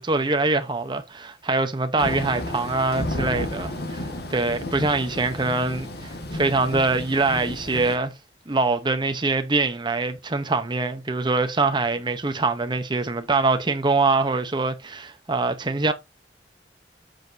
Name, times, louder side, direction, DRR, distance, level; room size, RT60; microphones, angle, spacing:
voice 1, 0.0-8.1 8.5-15.9, right 3 dB, 25° right, 0.8 m, -24 dB
Thunder / Rain, 2.0-8.0, left 1 dB, 65° left, 1.7 m, -32 dB
9.1 x 6.4 x 2.7 m
head